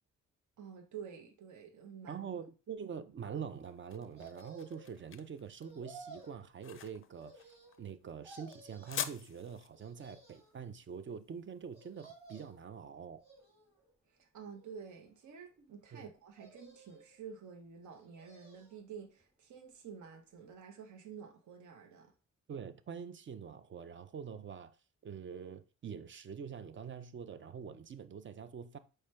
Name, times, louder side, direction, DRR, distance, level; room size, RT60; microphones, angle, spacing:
voice 1, 0.6-2.2 14.1-22.1, right 7 dB, 70° right, 0.8 m, -50 dB
voice 2, 2.1-7.5 7.8-13.2 15.9-16.0 22.5-24.8 25.0-28.8, right 7 dB, 40° right, 0.4 m, -45 dB
sound 1, 3.4-12.4, left 9 dB, 45° left, 0.4 m, -47 dB
sound 2, 4.2-5.0 5.6-6.4 7.2-7.9 8.2-9.1 9.7-10.6 11.7-12.7 13.2-13.9 14.5-15.3 16.3-17.1 17.9-18.8 19.2-19.3, right 3 dB, 20° right, 1.9 m, -55 dB
4.8 x 2.2 x 4.3 m
cardioid pair, 75°, 31 cm